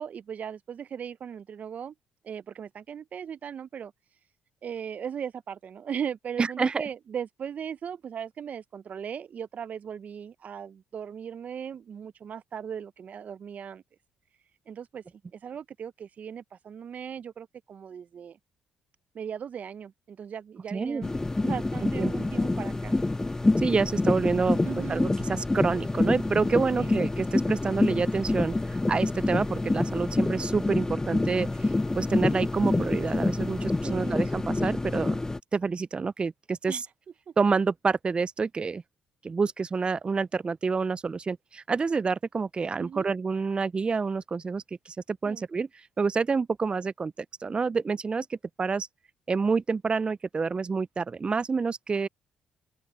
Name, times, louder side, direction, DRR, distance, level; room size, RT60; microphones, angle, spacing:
voice 1, 0.0-1.9 2.2-3.9 4.6-13.8 14.7-15.0 15.3-18.4 19.1-21.1 21.4-23.0 24.6-25.1 26.7-27.0 33.8-34.3 36.7-36.8 37.3-37.4 42.8-43.1 45.3-45.5, right 8 dB, 50° right, 0.9 m, -38 dB
voice 2, 6.4-6.9 20.7-21.0 22.0-22.1 23.6-24.6 24.9-31.7 32.0-35.2 35.5-36.8 37.4-38.8 39.2-45.7 46.0-47.1 47.4-48.9 49.3-52.1, right 4 dB, 30° right, 0.4 m, -28 dB
sound 1, 21.0-35.4, left 2 dB, 20° left, 1.6 m, -27 dB
open air
hypercardioid pair, 50°, 3 cm